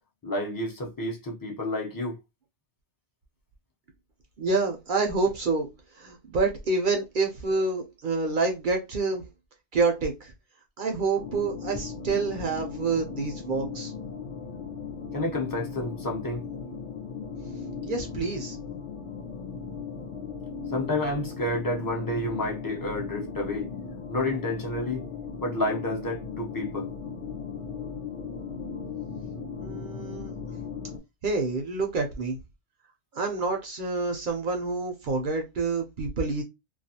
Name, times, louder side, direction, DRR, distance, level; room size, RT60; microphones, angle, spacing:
voice 1, 0.2-2.2 15.1-16.4 20.7-23.7 24.1-25.0 25.4-26.9, left 1 dB, 25° left, 0.5 m, -30 dB
voice 2, 4.4-5.7 6.0-9.2 9.7-10.3 10.8-13.9 17.8-18.6 29.5-30.3 31.2-32.4 33.1-36.4, right 3 dB, 55° right, 0.6 m, -27 dB
sound 1, 11.2-31.0, left 5 dB, 75° left, 0.9 m, -37 dB
2.3 x 2.2 x 2.7 m
omnidirectional pair, 1.2 m